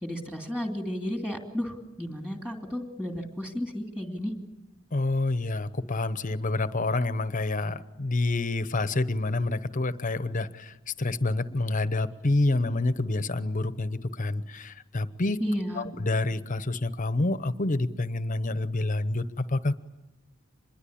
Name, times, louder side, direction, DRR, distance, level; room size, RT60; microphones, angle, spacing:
voice 1, 0.0-4.3 15.4-15.9, equal, 5° right, 3 dB, 2.7 m, -32 dB
voice 2, 4.9-15.4 15.7-19.7, left 2 dB, 40° left, 14 dB, 0.9 m, -28 dB
25.5 x 21.5 x 8.6 m, 1.0 s
head